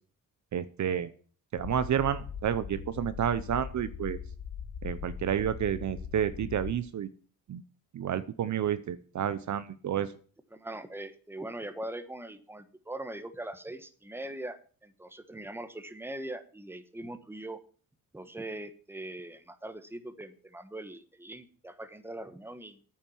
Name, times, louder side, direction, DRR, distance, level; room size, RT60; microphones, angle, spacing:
voice 1, 0.5-1.1 1.5-4.2 4.8-7.1 7.5-7.6 7.9-10.1, right 9 dB, 55° right, 13 dB, 0.8 m, -30 dB
sound 1, 1.6-6.7, left 7 dB, 75° left, 1.7 m, -40 dB
voice 2, 10.5-17.6 18.1-22.8, right 1 dB, 5° right, 10 dB, 1.3 m, -41 dB
9.4 x 8.8 x 7.1 m, 0.43 s
cardioid pair, 100°, 35 cm